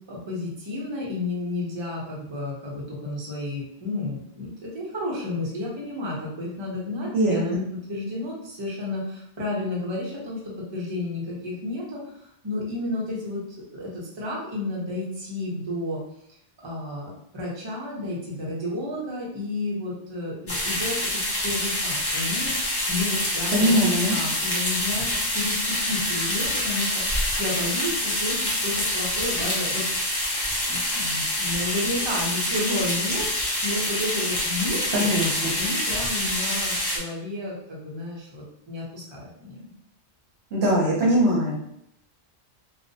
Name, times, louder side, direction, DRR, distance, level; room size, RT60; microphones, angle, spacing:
voice 1, 0.1-16.0 16.6-22.6 22.9-23.7 24.1-25.1 25.3-29.8 30.7-35.1 35.5-39.7, left 2 dB, 30° right, -4 dB, 0.6 m, -32 dB
voice 2, 7.1-7.6 23.5-24.2 34.9-35.4 40.5-41.6, equal, 70° right, -5 dB, 0.9 m, -21 dB
sound 1, 20.5-37.0, left 1 dB, 35° left, 0.4 m, -26 dB
2.4 x 2.1 x 2.6 m, 0.74 s
omnidirectional pair, 1.2 m